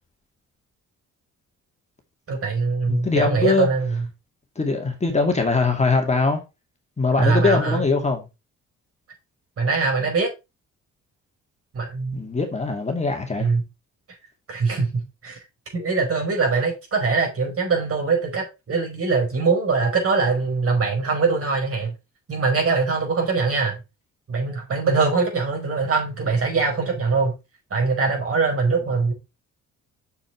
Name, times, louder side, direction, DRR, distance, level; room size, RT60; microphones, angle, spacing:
voice 1, 2.3-4.1 7.2-7.8 9.6-10.3 11.7-12.2 13.4-13.6 14.5-15.4 15.7-21.9 22.3-23.8 24.3-27.4 27.7-29.1, right 4 dB, 50° right, 5.1 m, -22 dB
voice 2, 2.9-3.7 4.6-6.4 7.0-8.3 12.1-13.5, left 3 dB, 20° left, 2.4 m, -22 dB
7.1 x 6.4 x 4.7 m
cardioid pair, 90°, 30 cm